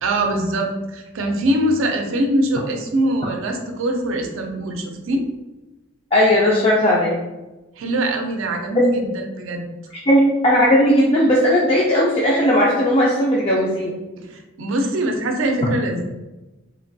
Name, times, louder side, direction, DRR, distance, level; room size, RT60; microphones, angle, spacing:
voice 1, 0.0-5.2 7.8-9.7 14.3-16.0, right 1 dB, 70° right, 3 dB, 0.4 m, -22 dB
voice 2, 6.1-7.2 10.1-13.9, equal, 30° left, -5 dB, 0.3 m, -16 dB
3.0 x 2.2 x 2.6 m, 1.1 s
head